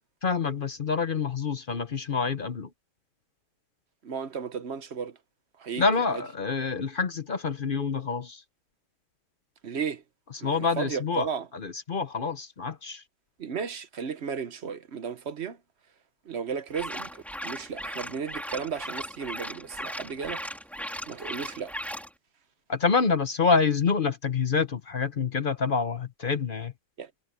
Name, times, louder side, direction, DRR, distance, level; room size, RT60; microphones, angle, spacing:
voice 1, 0.2-2.7 5.8-8.4 10.4-11.3 11.5-13.0 22.7-26.7, left 5 dB, 40° left, 0.8 m, -27 dB
voice 2, 4.0-5.2 5.6-5.8 6.1-6.2 9.6-10.0 10.4-11.5 13.4-15.6 16.2-20.4 21.0-21.7 27.0-27.1, right 6 dB, 45° right, 1.0 m, -34 dB
sound 1, 16.7-22.1, equal, ahead, 2.0 m, -37 dB
omnidirectional pair, 1.9 m